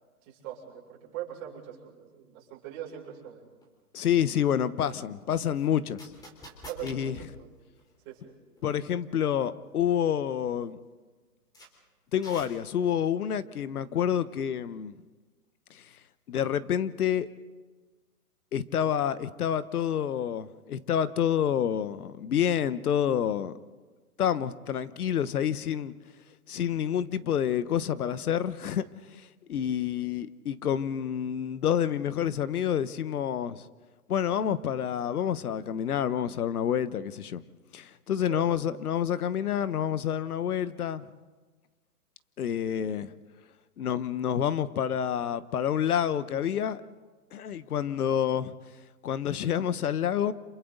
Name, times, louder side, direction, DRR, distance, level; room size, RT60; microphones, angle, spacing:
voice 1, 0.2-3.5 6.6-7.5 8.0-8.3 38.3-38.8, right 10 dB, 30° right, -3 dB, 6.5 m, -41 dB
sound 1, 3.6-3.7 5.5-8.3 8.6-8.7 9.3-9.6 10.0-10.1 10.6-10.7 11.5-11.7 12.2-12.9, equal, 10° left, 3.6 m, -48 dB
voice 2, 3.9-6.1 6.8-7.2 8.6-10.8 12.1-15.0 15.7-15.8 16.3-17.3 18.5-23.5 24.2-25.9 26.5-28.8 29.1-33.6 34.1-37.4 37.7-41.0 42.4-43.1 43.8-46.8 47.3-48.6 49.0-50.3, left 9 dB, 70° left, 15 dB, 1.2 m, -28 dB
29.5 x 27.5 x 4.0 m, 1.3 s
hypercardioid pair, 145°, 46 cm